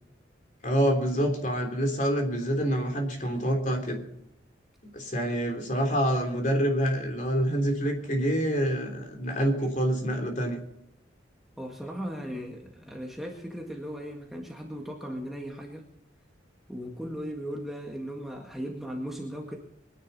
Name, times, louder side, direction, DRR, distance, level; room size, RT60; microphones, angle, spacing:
voice 1, 0.6-4.0 4.9-10.6, equal, 40° left, 3 dB, 3.3 m, -27 dB
voice 2, 11.6-15.9 16.7-19.6, equal, ahead, 0 dB, 1.7 m, -37 dB
23.0 x 10.5 x 4.1 m, 0.80 s
head